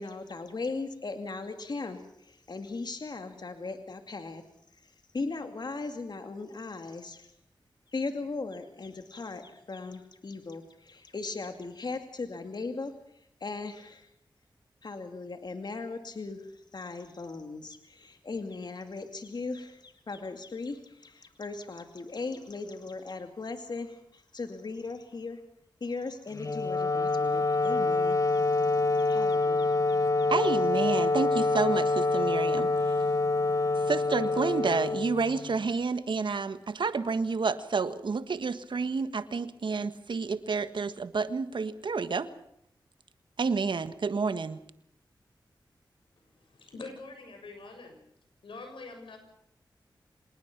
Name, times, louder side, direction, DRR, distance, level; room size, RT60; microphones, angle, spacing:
voice 1, 0.0-4.4 4.8-7.3 7.9-12.9 13.4-14.1 14.8-25.4 25.8-28.5 28.9-30.3, left 3 dB, 55° left, 7 dB, 2.3 m, -38 dB
Wind instrument woodwind instrument, 26.3-35.6, left 3 dB, 40° left, 1.2 m, -26 dB
voice 2, 30.3-32.7 33.8-42.3 43.4-44.6, right 4 dB, 70° right, 12 dB, 1.4 m, -30 dB
voice 3, 46.3-48.0 48.4-49.2, left 3 dB, 85° left, 5 dB, 6.6 m, -44 dB
26.0 x 19.5 x 6.0 m, 0.76 s
cardioid pair, 50°, 9 cm